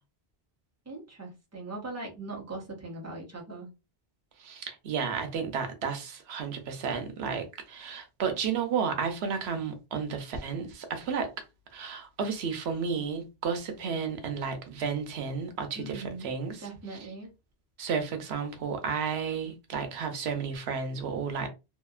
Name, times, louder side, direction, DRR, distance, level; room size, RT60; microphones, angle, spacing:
voice 1, 0.9-3.7 15.8-16.3 16.6-17.3, right 2 dB, 15° right, 0.8 m, -40 dB
voice 2, 4.4-11.3 11.7-16.7 17.8-21.5, right 6 dB, 90° right, 0.9 m, -32 dB
2.8 x 2.3 x 2.3 m
omnidirectional pair, 1.1 m